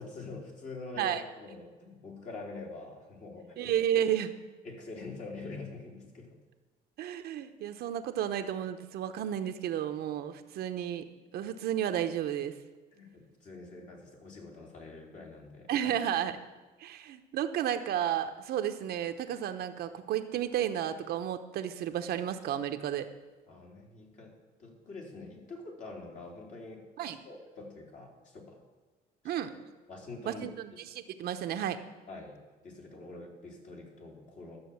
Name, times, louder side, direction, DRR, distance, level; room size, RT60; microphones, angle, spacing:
voice 1, 0.0-3.7 4.6-6.3 12.9-15.9 23.5-24.3 24.6-26.8 27.2-28.6 29.2-29.3 29.9-30.4 32.1-34.6, left 3 dB, 50° left, -1 dB, 3.3 m, -45 dB
voice 2, 3.6-4.3 7.0-11.1 11.3-12.5 15.7-16.3 16.8-23.1 27.0-27.2 29.2-29.5 30.3-31.8, right 10 dB, 70° right, 8 dB, 0.9 m, -32 dB
12.0 x 7.1 x 7.1 m, 1.3 s
cardioid pair, 110°, 17 cm